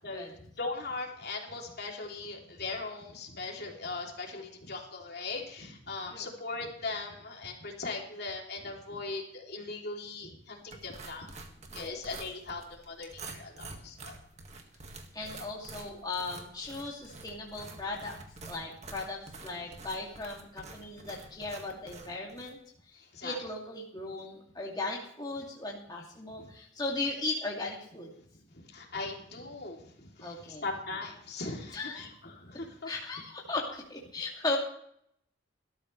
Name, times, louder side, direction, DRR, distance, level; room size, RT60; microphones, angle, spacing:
voice 1, 0.0-11.3 11.7-14.1 23.1-23.4 26.4-26.5 28.5-32.9, left 3 dB, 55° left, 0 dB, 3.0 m, -39 dB
sound 1, 10.7-22.6, right 3 dB, 35° right, 1.8 m, -48 dB
voice 2, 15.1-18.2 18.5-22.6 22.9-28.1 30.2-30.6 31.7-32.1 32.8-34.6, left 2 dB, 20° left, -3 dB, 2.5 m, -37 dB
19.0 x 13.0 x 3.3 m, 0.67 s
head